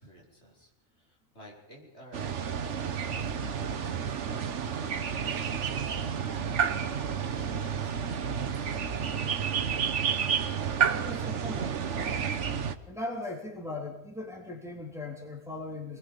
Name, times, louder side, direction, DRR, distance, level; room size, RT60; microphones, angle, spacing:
voice 1, 0.0-5.8 7.3-9.5, right 1 dB, 65° left, -2 dB, 5.8 m, -53 dB
sound 1, 2.1-12.7, right 7 dB, 80° right, 1.4 m, -30 dB
voice 2, 10.9-11.7 12.9-16.0, left 2 dB, ahead, -1 dB, 3.5 m, -38 dB
26.0 x 20.0 x 5.2 m, 0.76 s
omnidirectional pair, 1.2 m